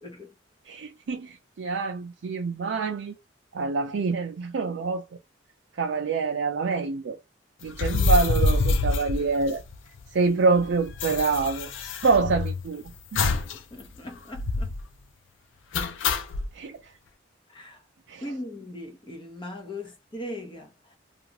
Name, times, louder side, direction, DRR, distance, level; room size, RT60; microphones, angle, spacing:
voice 1, 0.0-0.3 13.5-14.7 17.5-17.8 18.2-21.0, left 1 dB, 25° left, 0.8 m, -39 dB
voice 2, 0.7-3.1 3.5-5.0 5.8-7.2 7.6-9.6 10.1-11.7 12.0-12.8 13.1-13.2 16.5-16.8 18.1-18.2, right 4 dB, 70° right, 0.4 m, -26 dB
sound 1, 7.7-10.0 10.3-10.4 10.5-12.7 13.2-13.6 13.9-14.0 14.3-14.8 15.7-16.5, left 3 dB, 80° left, 0.4 m, -26 dB
2.5 x 2.3 x 2.9 m
head